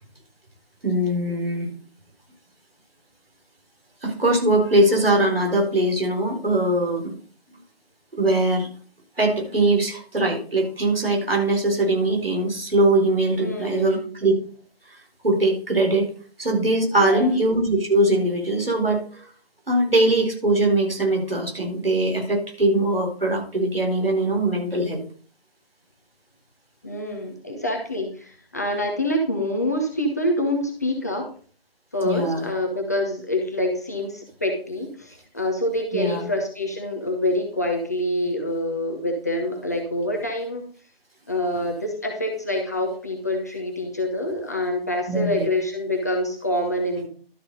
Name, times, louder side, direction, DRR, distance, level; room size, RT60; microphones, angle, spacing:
voice 1, 0.8-1.7 4.0-7.1 8.2-8.7 9.2-14.3 14.9-15.0 15.2-16.1 16.4-19.3 19.7-25.0 32.0-32.5 35.9-36.3 45.1-45.5, right 1 dB, 70° right, 2 dB, 4.2 m, -21 dB
voice 2, 13.4-14.1 17.0-17.4 26.8-31.3 31.9-40.6 41.3-47.1, left 1 dB, 15° left, 1 dB, 0.9 m, -26 dB
12.0 x 6.7 x 4.1 m, 0.43 s
figure-of-eight pair, 160°, 30 cm